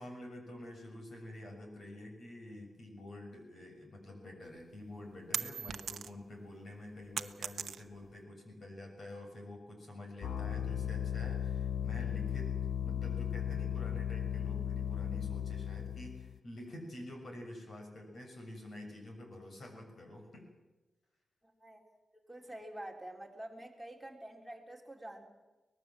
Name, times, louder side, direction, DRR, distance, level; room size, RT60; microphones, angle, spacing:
voice 1, 0.0-20.4, left 1 dB, 50° left, 3 dB, 6.7 m, -48 dB
sound 1, 4.5-6.3 6.7-8.2, right 7 dB, 75° right, 0.9 m, -39 dB
sound 2, 10.2-16.4, left 9 dB, 80° left, 0.8 m, -36 dB
voice 2, 22.3-25.3, right 1 dB, 5° right, 0 dB, 3.5 m, -47 dB
24.0 x 19.5 x 7.5 m, 1.2 s
wide cardioid pair, 145°, 0 cm